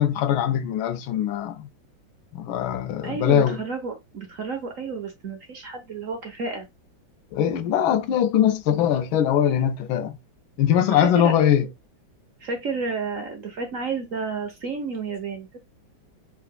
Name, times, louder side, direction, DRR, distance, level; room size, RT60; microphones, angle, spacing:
voice 1, 0.0-1.7 2.3-3.6 7.3-10.2 10.6-11.7, left 10 dB, 85° left, 1.4 m, -21 dB
voice 2, 3.0-6.7 10.9-11.3 12.4-15.6, right 4 dB, 50° right, 1.2 m, -31 dB
4.8 x 3.4 x 2.3 m
omnidirectional pair, 2.2 m